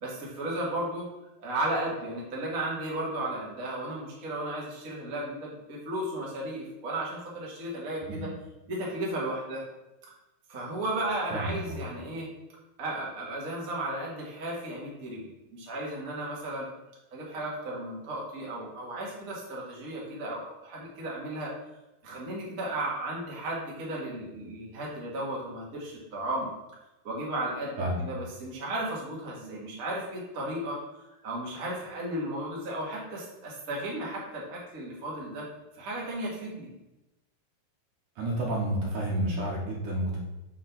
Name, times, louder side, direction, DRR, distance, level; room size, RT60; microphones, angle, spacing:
voice 1, 0.0-1.1 1.4-8.3 8.7-9.6 10.5-12.3 12.8-16.7 17.1-21.5 22.0-26.5 27.0-30.8 31.2-35.4 35.7-36.7, right 1 dB, 35° right, -4 dB, 1.5 m, -34 dB
voice 2, 11.3-11.8 27.8-28.0 38.2-40.2, right 1 dB, 65° right, -2 dB, 2.5 m, -30 dB
5.7 x 4.7 x 5.8 m, 0.97 s
omnidirectional pair, 4.2 m